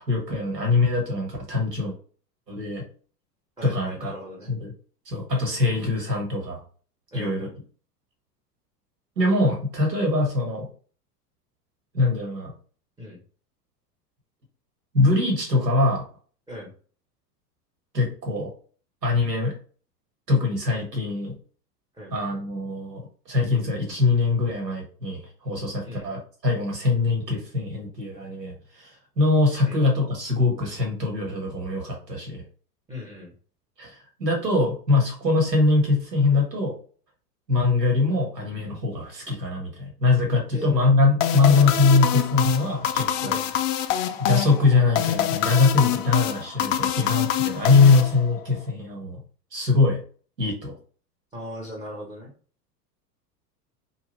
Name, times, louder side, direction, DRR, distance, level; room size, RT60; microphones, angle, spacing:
voice 1, 0.0-1.9 2.5-2.8 3.6-4.1 4.5-4.7 5.0-6.6 7.1-7.5 9.2-10.7 11.9-12.5 14.9-16.0 17.9-18.5 19.0-19.5 20.3-21.3 22.1-32.4 33.8-36.7 37.5-43.4 44.2-49.2 49.5-50.0 50.4-50.7, left 3 dB, 85° right, 0 dB, 1.4 m, -22 dB
voice 2, 3.6-4.5 7.1-7.5 13.0-13.2 16.5-16.7 21.9-22.1 25.8-26.2 29.6-29.8 32.9-33.3 40.5-40.7 43.2-43.5 51.3-52.3, left 1 dB, 10° right, -2 dB, 0.7 m, -38 dB
sound 1, 41.2-48.6, left 10 dB, 55° left, 0.5 m, -26 dB
2.8 x 2.2 x 3.1 m, 0.41 s
figure-of-eight pair, 85°, 48 cm